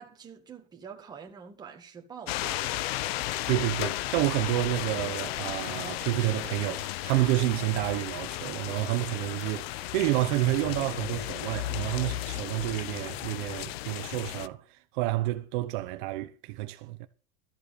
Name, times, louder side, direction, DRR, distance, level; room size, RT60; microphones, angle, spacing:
voice 1, 0.0-3.2, right 6 dB, 15° right, 1.7 m, -46 dB
sound 1, 2.3-14.5, left 15 dB, 85° left, 0.8 m, -34 dB
voice 2, 3.5-17.1, right 17 dB, 55° right, 1.0 m, -29 dB
13.5 x 7.4 x 6.9 m
cardioid pair, 180°, 30 cm